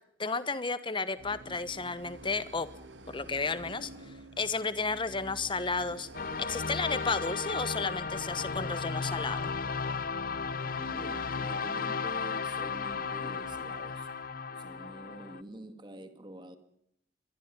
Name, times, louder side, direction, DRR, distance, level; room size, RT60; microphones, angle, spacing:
voice 1, 0.2-2.7 3.1-6.1 6.4-9.5, left 4 dB, 25° left, 1.2 m, -33 dB
sound 1, 1.2-14.3, right 1 dB, 80° right, 2.8 m, -50 dB
sound 2, 6.1-15.4, left 5 dB, 50° left, 0.8 m, -35 dB
voice 2, 10.9-14.1 14.5-16.6, right 1 dB, 25° right, 2.1 m, -46 dB
24.0 x 22.0 x 5.3 m
head